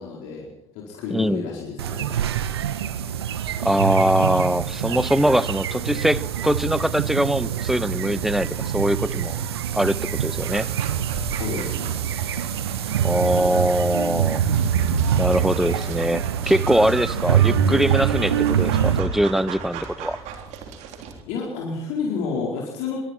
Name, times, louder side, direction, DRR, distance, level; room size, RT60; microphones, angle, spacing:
voice 1, 0.0-2.1 2.9-3.0 11.3-12.0 21.2-23.0, left 5 dB, 60° left, -1 dB, 4.5 m, -30 dB
voice 2, 1.1-1.4 3.6-8.5 8.7-9.4 9.7-10.7 13.0-14.4 15.2-20.2, equal, ahead, 18 dB, 1.0 m, -22 dB
sound 1, 1.8-19.0, right 9 dB, 75° right, 1.5 m, -24 dB
Dog, 10.5-21.2, right 6 dB, 60° right, 3.6 m, -39 dB
25.5 x 23.0 x 4.5 m, 0.74 s
figure-of-eight pair, 55°, 13 cm